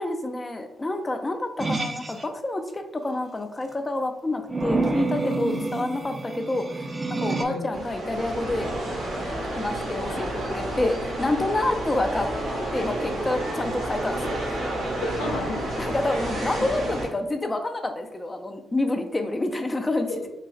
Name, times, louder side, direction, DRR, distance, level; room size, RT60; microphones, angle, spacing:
voice 1, 0.0-6.7 7.2-8.7 9.5-12.3 12.7-14.6 15.8-20.1, left 2 dB, 25° left, 5 dB, 0.4 m, -28 dB
sound 1, 1.6-2.2 4.5-7.4, right 3 dB, 35° right, 0.5 m, -28 dB
voice 2, 5.5-5.9 7.3-7.8 10.1-10.3 15.0-15.6 16.1-16.3 16.6-16.7 20.1-20.3, left 2 dB, 85° left, 0 dB, 0.5 m, -34 dB
sound 2, 7.7-17.1, right 1 dB, 75° right, 1.3 m, -30 dB
3.9 x 2.3 x 2.4 m, 0.93 s
hypercardioid pair, 45°, 0 cm